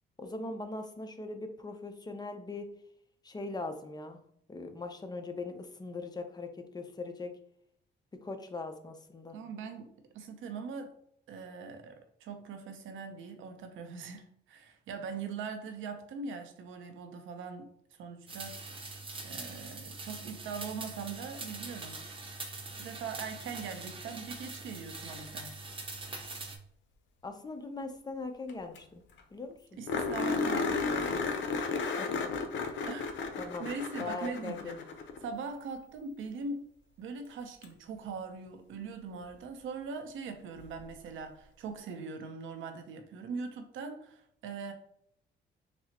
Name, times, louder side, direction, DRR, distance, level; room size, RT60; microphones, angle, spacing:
voice 1, 0.2-2.7 3.2-4.2 4.5-7.3 8.2-9.4 27.2-29.0 29.3-29.6 32.0-32.3 32.7-32.9 33.4-34.8, left 3 dB, 20° left, 6 dB, 0.6 m, -40 dB
voice 2, 9.3-10.9 11.3-17.7 18.0-18.6 19.2-22.0 22.8-25.6 29.7-31.3 32.8-34.8 35.2-36.6 37.0-44.7, right 5 dB, 80° right, 6 dB, 0.7 m, -41 dB
sound 1, 18.3-26.6, right 3 dB, 25° right, 0.7 m, -43 dB
sound 2, 28.5-28.6 28.8-28.9 29.2-29.3 29.9-35.3 37.6-37.7 40.6-40.7, left 4 dB, 70° left, 0.6 m, -33 dB
6.0 x 2.0 x 2.8 m, 0.68 s
cardioid pair, 90°, 20 cm